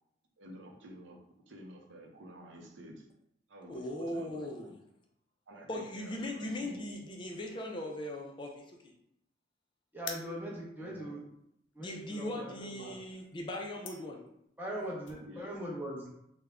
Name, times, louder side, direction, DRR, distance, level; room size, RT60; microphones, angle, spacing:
voice 1, 0.4-1.2 1.5-3.1 3.5-4.7 5.5-7.3 10.8-11.1 12.3-13.0 15.3-15.5, right 1 dB, 85° right, 1 dB, 0.6 m, -51 dB
voice 2, 3.7-4.7 5.7-8.9 11.8-14.2, left 1 dB, 25° left, 1 dB, 0.3 m, -39 dB
voice 3, 9.9-11.2 11.7-12.9 14.6-16.1, equal, 10° right, -4 dB, 0.7 m, -40 dB
sound 1, 10.0-15.2, left 6 dB, 80° left, 0.5 m, -48 dB
3.4 x 2.1 x 3.5 m, 0.77 s
head